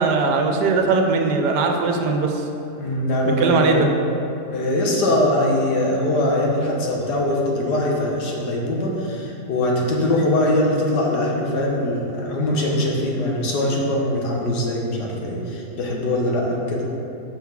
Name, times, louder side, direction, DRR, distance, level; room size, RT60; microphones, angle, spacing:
voice 1, 0.0-2.4 3.3-3.9, right 4 dB, 90° right, 3 dB, 1.4 m, -20 dB
voice 2, 2.7-3.8 4.5-16.8, left 1 dB, 80° left, -2 dB, 1.7 m, -22 dB
5.7 x 5.4 x 5.9 m, 2.8 s
omnidirectional pair, 1.8 m